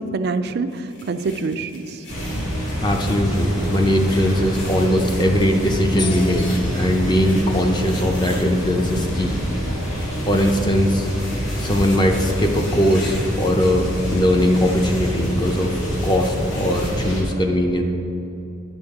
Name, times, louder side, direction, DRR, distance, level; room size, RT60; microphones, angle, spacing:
voice 1, 0.0-2.0, right 3 dB, 50° right, 11 dB, 0.3 m, -26 dB
sound 1, 0.7-9.1 9.8-16.9, left 1 dB, 55° left, 1.5 m, -38 dB
sound 2, 2.1-17.2, equal, 75° left, 1.7 m, -26 dB
voice 2, 2.8-9.4 10.3-11.1 11.6-17.8, equal, 20° left, 3 dB, 0.5 m, -20 dB
9.7 x 6.3 x 3.6 m, 2.8 s
head